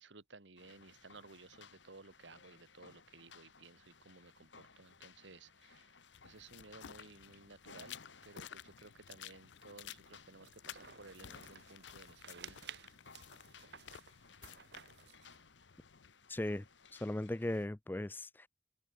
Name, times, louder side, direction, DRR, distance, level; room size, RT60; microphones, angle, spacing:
voice 1, 0.0-5.9 6.2-12.6, right 3 dB, 80° right, 1.8 m, -57 dB
sound 1, 0.6-17.7, left 5 dB, 90° left, 2.7 m, -61 dB
sound 2, 6.1-16.1, left 10 dB, 75° left, 0.5 m, -54 dB
sound 3, 10.4-15.5, right 7 dB, 65° right, 2.8 m, -55 dB
voice 2, 16.3-16.6 16.9-18.5, left 1 dB, 10° left, 0.4 m, -37 dB
head